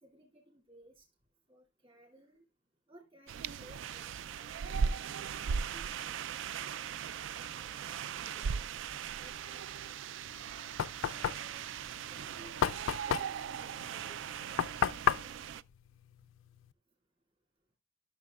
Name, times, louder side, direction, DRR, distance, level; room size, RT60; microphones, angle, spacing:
voice 1, 0.0-1.1 1.5-2.4 2.9-6.2 6.9-7.8 8.2-8.8 9.2-10.1 11.0-11.7 12.1-14.4 14.9-15.1, right 1 dB, 30° right, 2.5 m, -59 dB
sound 1, 3.3-15.6, right 6 dB, 70° right, 0.3 m, -38 dB
Knock, 10.2-16.7, left 8 dB, 80° left, 0.4 m, -34 dB
12.0 x 6.4 x 2.3 m
head